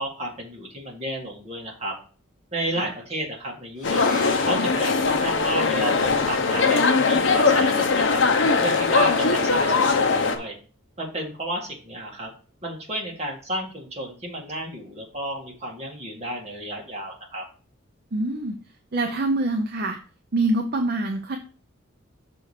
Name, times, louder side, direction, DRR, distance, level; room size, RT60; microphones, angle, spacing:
voice 1, 0.0-1.9 2.5-4.1 4.4-8.2 8.6-10.6 11.0-12.3 12.6-17.4, right 1 dB, 30° right, -1 dB, 1.8 m, -32 dB
sound 1, 3.8-10.4, left 4 dB, 60° left, 0.8 m, -20 dB
sound 2, 10.9-11.0 11.3-11.9 12.5-12.6, left 1 dB, 35° left, 2.0 m, -44 dB
voice 2, 18.1-18.6 18.9-20.0 20.3-21.4, right 2 dB, 45° right, 4 dB, 0.6 m, -25 dB
6.2 x 4.3 x 4.9 m, 0.39 s
head